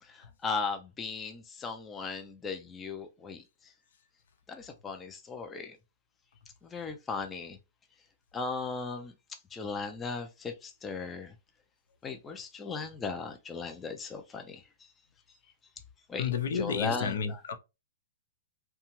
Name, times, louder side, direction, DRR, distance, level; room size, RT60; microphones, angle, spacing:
voice 1, 0.0-3.7 4.5-5.8 6.6-7.6 8.3-9.1 9.5-11.3 12.0-14.9 16.1-17.4, left 4 dB, 15° left, 0.4 m, -37 dB
voice 2, 16.2-17.5, left 6 dB, 65° left, 0.6 m, -31 dB
2.8 x 2.2 x 2.9 m
hypercardioid pair, 145°, 0 cm